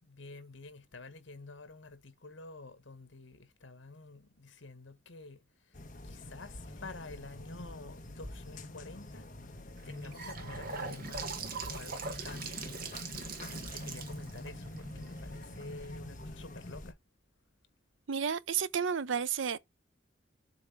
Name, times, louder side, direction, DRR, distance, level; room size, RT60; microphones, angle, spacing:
voice 1, 0.0-5.4 6.0-9.3 9.8-12.9 13.6-16.9, left 3 dB, 80° left, 1.6 m, -49 dB
sound 1, 5.7-16.9, left 1 dB, 45° left, 1.3 m, -45 dB
Gurgling / Sink (filling or washing) / Bathtub (filling or washing), 9.8-15.9, right 4 dB, 50° right, 1.7 m, -42 dB
voice 2, 18.1-19.6, right 7 dB, 80° right, 0.6 m, -31 dB
7.6 x 3.4 x 6.1 m
head